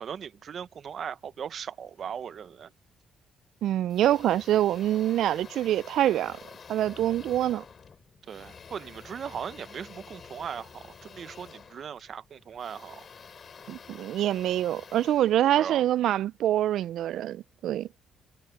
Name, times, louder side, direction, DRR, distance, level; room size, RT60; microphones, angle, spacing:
voice 1, 0.0-2.7 8.3-13.1 15.5-15.8, right 8 dB, 55° right, 0.8 m, -38 dB
voice 2, 3.6-6.4 6.7-7.6 13.7-17.9, right 12 dB, 80° right, 0.3 m, -25 dB
sound 1, 3.9-16.1, left 6 dB, 45° left, 7.2 m, -49 dB
cardioid pair, 90°, 0 cm